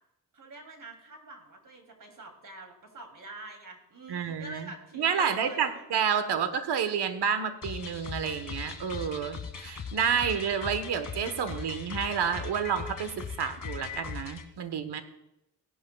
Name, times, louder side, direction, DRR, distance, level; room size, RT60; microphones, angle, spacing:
voice 1, 0.3-6.0 14.9-15.0, right 2 dB, 45° right, 4 dB, 3.0 m, -46 dB
voice 2, 4.1-4.7 4.9-13.1 13.4-15.0, right 7 dB, 70° right, 10 dB, 1.3 m, -29 dB
sound 1, 7.6-14.5, left 6 dB, 45° left, 1.7 m, -39 dB
16.5 x 11.0 x 2.4 m, 0.91 s
cardioid pair, 65°, 43 cm